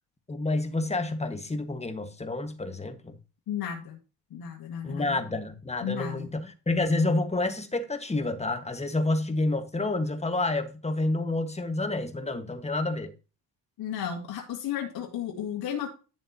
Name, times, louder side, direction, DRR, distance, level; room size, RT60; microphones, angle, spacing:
voice 1, 0.3-3.2 4.8-13.1, left 2 dB, 15° left, 1.5 m, -29 dB
voice 2, 3.5-4.0 4.3-5.2 5.8-6.3 13.8-15.9, left 9 dB, 50° left, 1.7 m, -33 dB
10.5 x 7.1 x 2.8 m
hypercardioid pair, 60°, 47 cm